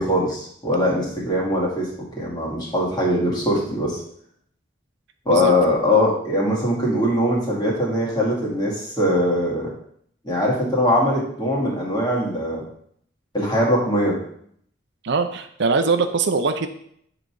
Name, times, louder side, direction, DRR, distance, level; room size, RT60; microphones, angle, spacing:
voice 1, 0.0-1.9 2.2-4.0 5.3-9.7 10.2-12.6 13.3-14.2, left 1 dB, 25° left, -4 dB, 2.3 m, -21 dB
voice 2, 15.0-16.7, right 4 dB, 65° right, 8 dB, 0.6 m, -21 dB
7.7 x 4.0 x 4.6 m, 0.67 s
head